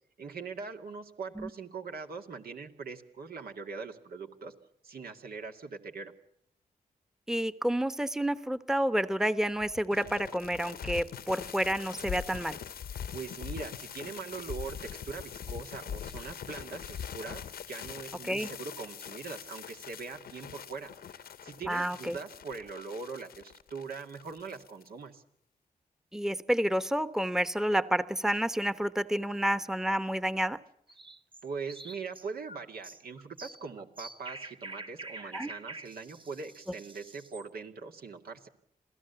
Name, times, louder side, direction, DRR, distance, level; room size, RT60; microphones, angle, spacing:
voice 1, 0.2-4.5 4.8-6.1 13.1-25.2 31.4-38.5, right 5 dB, 75° right, 4 dB, 2.2 m, -42 dB
voice 2, 7.3-12.6 18.2-18.5 21.7-22.2 26.1-30.6 35.2-35.5, equal, 5° right, 13 dB, 1.0 m, -29 dB
sound 1, 9.6-24.9, left 8 dB, 85° left, 1.1 m, -43 dB
sound 2, 30.9-37.5, right 2 dB, 30° right, 1.3 m, -46 dB
27.0 x 16.5 x 7.0 m, 0.76 s
cardioid pair, 55°, 16 cm